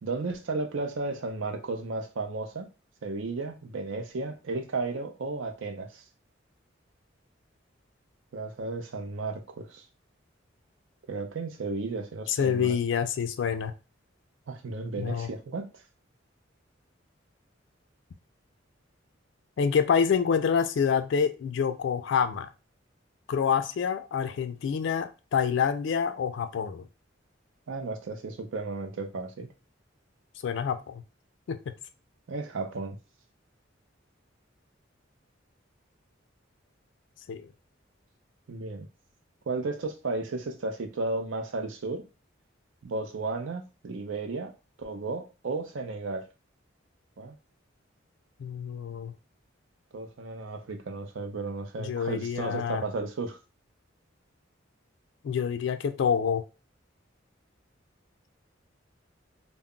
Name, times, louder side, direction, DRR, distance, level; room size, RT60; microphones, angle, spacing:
voice 1, 0.0-2.7 3.0-6.0 8.3-9.8 11.1-12.8 14.5-15.8 27.7-29.5 32.3-33.0 38.5-38.9 39.5-42.1 42.8-44.5 44.8-46.3 47.2-47.4 49.9-53.4, right 3 dB, 75° right, 0.5 m, -34 dB
voice 2, 12.3-13.7 15.0-15.3 19.6-22.5 23.3-26.9 30.4-31.0 31.5-31.7 37.3-37.5 48.4-49.1 51.8-52.8 55.2-56.4, left 7 dB, 65° left, 0.3 m, -27 dB
2.2 x 2.0 x 3.6 m
head